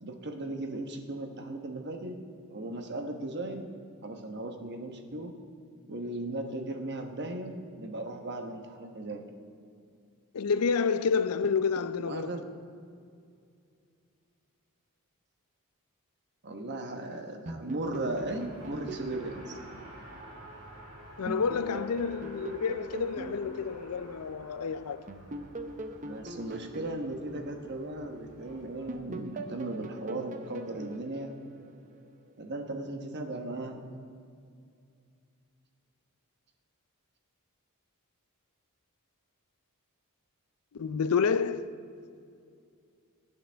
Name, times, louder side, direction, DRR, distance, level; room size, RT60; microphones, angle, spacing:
voice 1, 0.0-2.2 2.5-3.7 4.0-5.3 5.9-9.2 12.0-12.4 16.4-19.6 26.0-31.3 32.4-33.9, right 2 dB, 50° right, 1.1 m, -37 dB
voice 2, 10.3-12.4 21.2-25.1 40.7-41.7, left 5 dB, 75° left, 0.5 m, -29 dB
sound 1, 17.5-20.8 21.3-24.5 25.1-28.4 28.9-32.1, right 1 dB, 35° right, 0.7 m, -42 dB
Race car auto racing, 17.6-29.0, right 1 dB, 80° right, 3.6 m, -51 dB
21.5 x 9.1 x 3.4 m
head